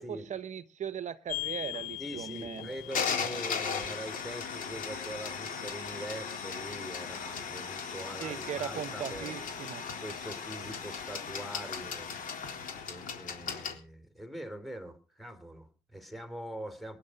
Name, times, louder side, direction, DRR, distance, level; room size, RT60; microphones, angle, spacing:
voice 1, 0.0-2.8 8.2-9.8, right 9 dB, 45° right, 14 dB, 0.9 m, -39 dB
sound 1, 1.3-13.7, left 7 dB, 55° left, 3.9 m, -37 dB
voice 2, 2.0-9.3 10.0-17.0, right 1 dB, ahead, 11 dB, 3.2 m, -43 dB
19.0 x 10.5 x 6.5 m, 0.38 s
cardioid pair, 110°, 17 cm